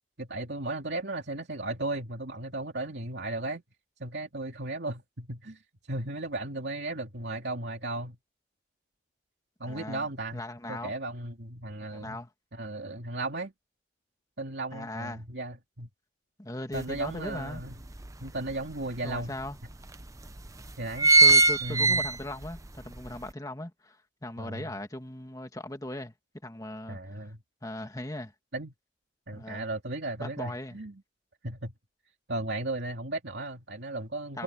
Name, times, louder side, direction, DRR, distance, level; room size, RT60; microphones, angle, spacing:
voice 1, 0.2-3.6 4.0-5.6 5.9-8.2 9.6-10.4 10.7-12.2 12.5-13.5 14.4-15.9 16.7-17.8 18.2-19.4 20.8-21.1 21.6-22.0 24.4-24.6 26.9-27.4 28.5-28.7 29.3-31.0 31.4-31.7 32.3-34.4, right 2 dB, 75° right, 2.6 m, -35 dB
voice 2, 9.6-10.1 10.3-10.9 11.9-12.3 14.7-15.2 16.4-17.6 19.0-19.6 21.2-26.1 26.4-27.3 27.6-28.3 29.3-29.7 30.2-30.8 34.3-34.4, left 1 dB, 20° left, 2.1 m, -39 dB
sound 1, 16.8-16.9 17.3-18.5 19.1-19.2 19.5-19.6 20.3-20.5 20.7-22.6 23.0-23.1, right 3 dB, 20° right, 0.8 m, -20 dB
head